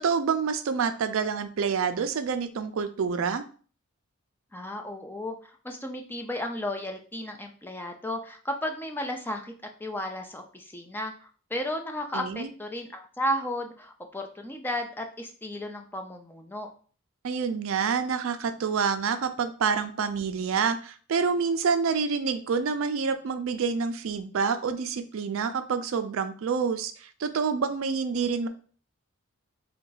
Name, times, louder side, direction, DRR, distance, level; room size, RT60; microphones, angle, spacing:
voice 1, 0.0-3.4 12.1-12.5 17.2-28.5, right 5 dB, 65° right, 10 dB, 0.4 m, -27 dB
voice 2, 4.5-9.5 9.8-16.7, left 1 dB, 10° left, 4 dB, 0.4 m, -34 dB
3.7 x 2.3 x 3.9 m, 0.41 s
head